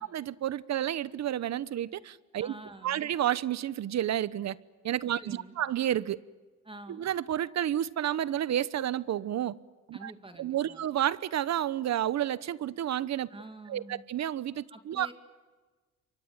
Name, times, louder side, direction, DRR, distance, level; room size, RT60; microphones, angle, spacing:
voice 1, 0.1-2.5 2.8-4.6 4.8-6.2 6.9-9.5 9.9-10.1 10.4-13.3 13.7-15.1, right 11 dB, 60° right, 1.0 m, -30 dB
voice 2, 2.4-3.1 5.2-5.6 6.6-7.1 9.9-10.8 13.3-14.0 14.7-15.1, right 2 dB, 15° right, 2.5 m, -47 dB
28.0 x 24.0 x 8.9 m
cardioid pair, 90°, 30 cm